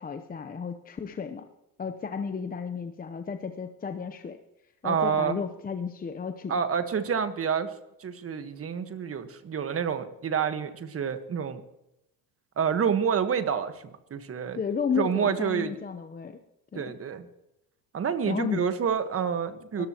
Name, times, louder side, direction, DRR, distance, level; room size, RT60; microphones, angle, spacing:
voice 1, 0.0-1.5 1.8-4.4 4.8-6.6 14.5-16.4 16.7-16.9 18.2-18.6 19.8-19.9, left 6 dB, 20° left, 8 dB, 0.8 m, -33 dB
voice 2, 4.8-5.4 6.5-7.7 8.0-11.6 12.6-14.6 14.9-15.8 16.7-17.3 17.9-19.9, right 7 dB, 35° right, 9 dB, 1.4 m, -28 dB
22.0 x 13.5 x 3.0 m, 0.85 s
supercardioid pair, 105°, 41 cm